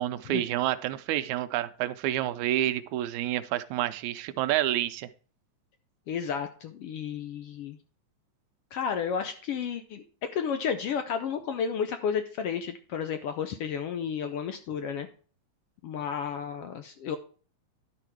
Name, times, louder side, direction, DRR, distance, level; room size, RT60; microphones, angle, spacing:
voice 1, 0.0-5.1, right 13 dB, 85° right, 12 dB, 2.0 m, -29 dB
voice 2, 6.1-7.8 8.7-10.0 10.3-15.1 15.8-17.2, left 7 dB, 75° left, 8 dB, 1.4 m, -32 dB
11.5 x 4.9 x 4.6 m, 0.40 s
omnidirectional pair, 3.3 m